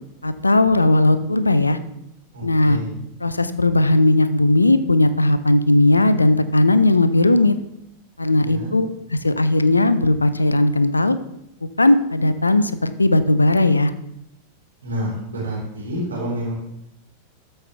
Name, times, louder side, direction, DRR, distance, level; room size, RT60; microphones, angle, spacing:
voice 1, 0.2-1.8 2.4-2.8 3.2-7.5 8.2-8.9 9.2-11.2 11.8-13.9, left 2 dB, 80° left, 13 dB, 0.5 m, -17 dB
voice 2, 2.3-3.0 8.3-8.7 14.8-16.5, equal, 75° right, -5 dB, 3.5 m, -29 dB
13.0 x 5.6 x 3.4 m, 0.83 s
figure-of-eight pair, 90°, 0 cm